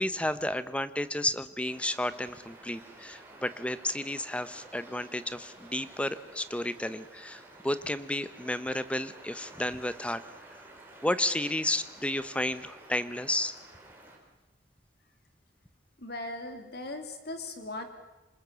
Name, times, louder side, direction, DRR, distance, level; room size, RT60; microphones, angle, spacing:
voice 1, 0.0-10.2 11.0-13.5, left 1 dB, 5° left, 13 dB, 0.9 m, -32 dB
sound 1, 1.6-14.2, right 1 dB, 10° right, 4.2 m, -52 dB
voice 2, 16.0-17.8, left 2 dB, 60° left, 6 dB, 3.0 m, -38 dB
27.0 x 20.5 x 7.0 m, 1.1 s
head